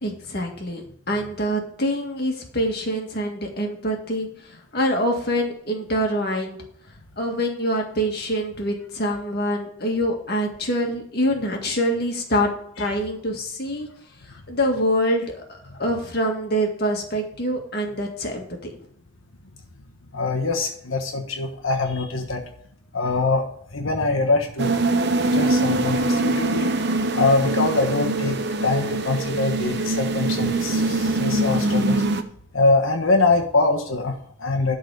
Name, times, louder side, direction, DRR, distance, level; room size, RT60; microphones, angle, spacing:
voice 1, 0.0-4.3 4.7-6.6 7.2-12.5 12.8-13.9 14.5-15.4 15.8-18.5, equal, 50° left, 2 dB, 1.9 m, -25 dB
voice 2, 20.1-22.4 22.9-23.4 23.7-24.8 25.3-26.8 27.1-32.0 32.5-34.7, left 3 dB, 75° left, 2 dB, 1.2 m, -23 dB
sound 1, 24.6-32.2, right 2 dB, 55° right, 0.8 m, -23 dB
12.0 x 4.1 x 6.7 m, 0.64 s
head